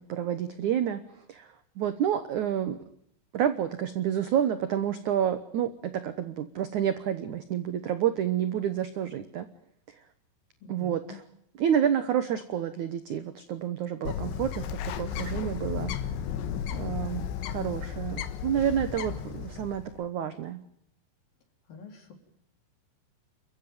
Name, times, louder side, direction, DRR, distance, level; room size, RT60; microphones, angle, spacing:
voice 1, 0.1-1.0 1.3-1.5 1.8-2.8 3.3-9.5 10.7-11.2 11.6-15.9 16.7-20.6, right 9 dB, 75° right, 11 dB, 1.8 m, -29 dB
voice 2, 10.6-11.2 21.7-22.1, left 4 dB, 50° left, 5 dB, 5.3 m, -46 dB
Bird, 14.1-20.0, left 8 dB, 75° left, 3.7 m, -34 dB
28.5 x 15.5 x 9.3 m, 0.73 s
omnidirectional pair, 5.3 m